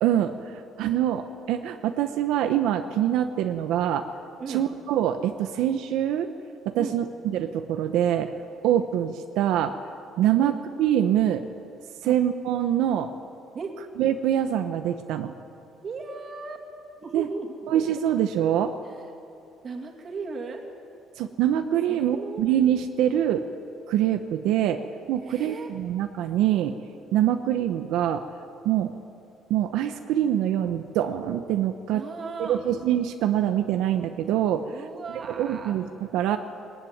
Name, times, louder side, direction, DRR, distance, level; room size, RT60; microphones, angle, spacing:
voice 1, 0.0-4.1 4.5-6.3 6.6-8.3 8.6-9.8 10.2-11.5 12.0-13.1 14.0-15.3 17.1-17.3 17.7-18.8 21.2-23.5 23.9-24.8 25.1-26.8 27.1-28.3 28.6-28.9 29.5-32.0 32.4-34.8 35.3-36.4, right 11 dB, 80° right, 7 dB, 1.0 m, -24 dB
voice 2, 15.8-16.6 17.0-17.6 19.6-20.6 21.9-22.4 25.2-25.7 31.9-32.7 34.7-35.8, right 4 dB, 30° right, 2 dB, 2.6 m, -36 dB
21.0 x 19.0 x 9.4 m, 2.6 s
cardioid pair, 155°, 0 cm